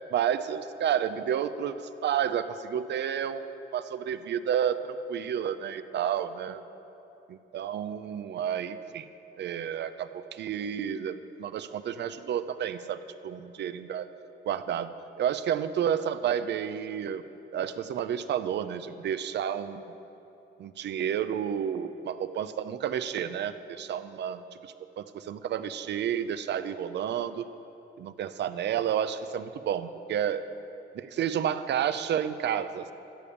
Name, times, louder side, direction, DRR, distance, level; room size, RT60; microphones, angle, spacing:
voice 1, 0.1-6.6 7.3-9.0 9.4-14.1 14.4-14.9 15.2-17.2 17.5-19.8 20.6-24.4 25.0-27.4 28.0-30.5 30.9-32.9, right 9 dB, 60° right, 12 dB, 0.6 m, -30 dB
13.5 x 5.3 x 8.4 m, 2.9 s
cardioid pair, 90°, 20 cm